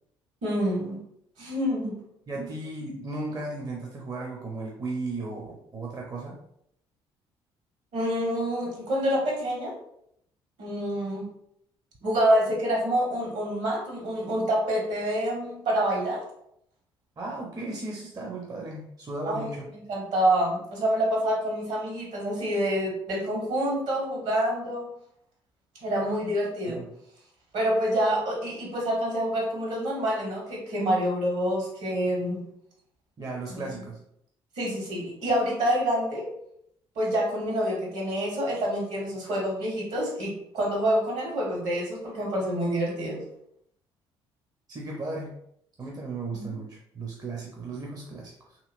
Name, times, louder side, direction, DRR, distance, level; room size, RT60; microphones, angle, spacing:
voice 1, 0.4-1.0 1.4-1.9 2.4-2.5 7.9-9.7 10.6-11.2 12.0-16.2 19.3-19.4 19.9-24.9 25.8-26.8 27.5-32.4 33.5-33.6 34.6-36.3 36.9-43.2 46.3-46.5, equal, 60° right, -2 dB, 1.3 m, -27 dB
voice 2, 2.3-6.4 17.2-19.7 26.7-26.9 33.2-34.0 44.7-45.3 45.8-48.6, right 2 dB, 30° right, -1 dB, 0.7 m, -35 dB
2.9 x 2.8 x 2.5 m, 0.72 s
hypercardioid pair, 50°, 13 cm